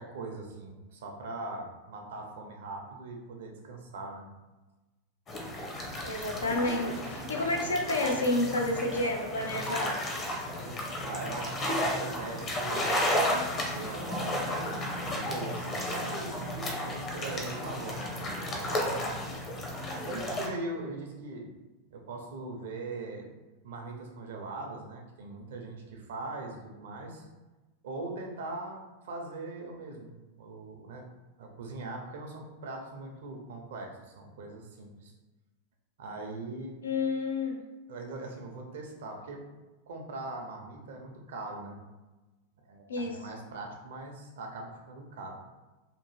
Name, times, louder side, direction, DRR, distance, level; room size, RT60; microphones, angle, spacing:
voice 1, 0.0-4.3 11.1-13.1 13.5-19.4 20.0-21.5 21.9-23.3 23.6-27.3 27.8-31.1 31.4-35.1 36.0-36.8 37.9-39.4 39.9-41.8 42.6-45.4, right 2 dB, 75° right, 2 dB, 0.6 m, -41 dB
sound 1, 5.3-20.5, left 1 dB, 35° left, 0.7 m, -33 dB
voice 2, 6.0-10.0 36.8-37.6 42.9-43.2, left 2 dB, 90° left, 2 dB, 0.4 m, -30 dB
2.8 x 2.1 x 3.1 m, 1.1 s
hypercardioid pair, 100°, 0 cm